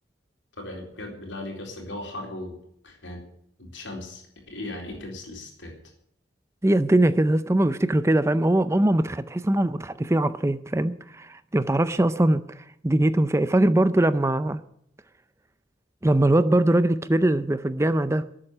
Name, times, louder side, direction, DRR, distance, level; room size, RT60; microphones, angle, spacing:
voice 1, 0.6-2.6 2.8-3.2 3.6-5.7, left 1 dB, 80° left, 1 dB, 4.1 m, -37 dB
voice 2, 6.6-12.4 12.8-14.6 16.0-18.2, right 1 dB, 15° right, 13 dB, 0.5 m, -21 dB
12.5 x 8.8 x 9.9 m, 0.71 s
head